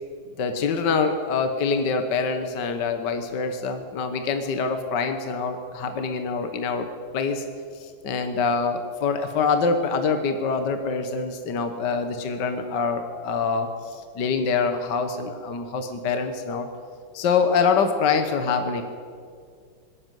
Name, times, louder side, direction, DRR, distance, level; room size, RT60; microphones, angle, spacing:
voice 1, 0.4-6.9 7.1-7.4 7.7-16.7 17.1-18.8, left 5 dB, 60° left, 7 dB, 1.8 m, -25 dB
21.0 x 16.5 x 9.3 m, 2.2 s
omnidirectional pair, 2.2 m